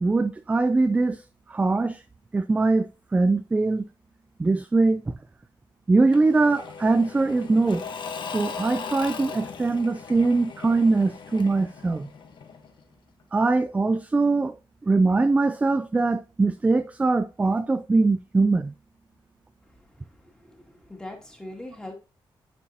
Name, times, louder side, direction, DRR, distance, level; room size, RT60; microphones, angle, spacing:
voice 1, 0.0-1.2 1.5-2.0 2.3-3.9 4.4-5.1 5.9-7.8 8.2-12.1 13.3-14.6 14.9-18.7, right 3 dB, 15° right, 0.3 m, -22 dB
Engine / Mechanisms / Drill, 6.1-12.8, left 6 dB, 60° left, 1.2 m, -38 dB
voice 2, 20.2-21.9, left 1 dB, 10° left, 2.2 m, -41 dB
9.8 x 6.0 x 2.8 m
wide cardioid pair, 130°, 9 cm